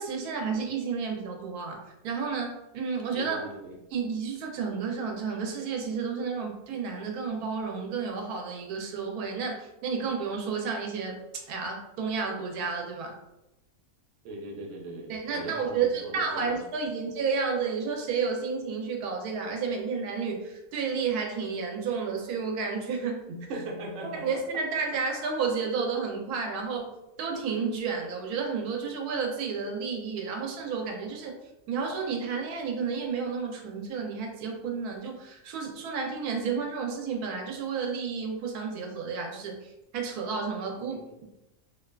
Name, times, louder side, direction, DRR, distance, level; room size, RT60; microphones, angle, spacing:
voice 1, 0.0-3.4 3.9-11.2 11.5-13.2 15.1-23.2 24.2-26.9 27.2-31.3 31.7-41.0, right 5 dB, 90° right, 1 dB, 1.1 m, -31 dB
voice 2, 3.1-3.8 14.2-16.6 23.3-24.4 40.8-41.2, right 1 dB, 65° right, 1 dB, 0.8 m, -39 dB
2.6 x 2.2 x 2.2 m, 0.91 s
omnidirectional pair, 1.6 m